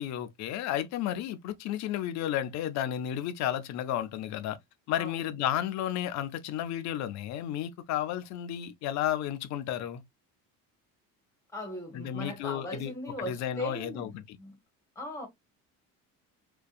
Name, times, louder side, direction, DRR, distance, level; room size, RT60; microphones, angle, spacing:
voice 1, 0.0-4.6 4.9-10.0 11.9-12.9 13.2-14.4, left 11 dB, 55° left, 0.4 m, -32 dB
voice 2, 11.5-14.6 15.0-15.3, equal, 10° left, 0.9 m, -39 dB
2.6 x 2.2 x 2.3 m
cardioid pair, 145°, 33 cm